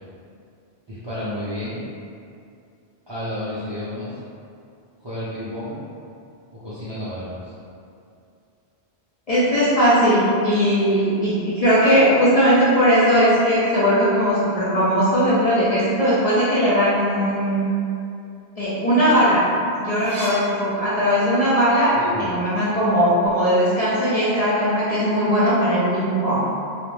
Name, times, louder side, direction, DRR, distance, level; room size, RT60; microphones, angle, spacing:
voice 1, 0.9-1.8 3.1-4.2 5.0-5.8 6.5-7.5 21.9-22.3, left 1 dB, 40° right, -12 dB, 0.4 m, -31 dB
voice 2, 9.3-17.6 18.6-19.4 19.8-26.4, equal, 50° left, -11 dB, 0.5 m, -19 dB
sound 1, 19.1-21.5 21.9-23.4, right 1 dB, 70° right, 0.8 m, -39 dB
2.4 x 2.1 x 3.0 m, 2.5 s
omnidirectional pair, 1.1 m